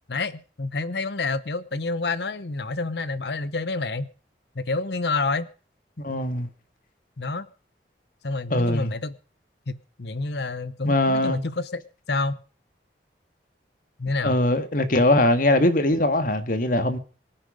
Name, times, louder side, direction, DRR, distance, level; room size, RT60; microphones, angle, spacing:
voice 1, 0.1-4.1 4.6-5.5 7.2-7.5 8.2-9.1 9.7-11.8 12.1-12.4 14.0-14.4, left 3 dB, 65° left, 0.8 m, -28 dB
voice 2, 6.0-6.5 8.5-8.9 10.8-11.4 14.2-17.0, left 1 dB, 50° left, 1.9 m, -21 dB
24.0 x 10.0 x 5.2 m
head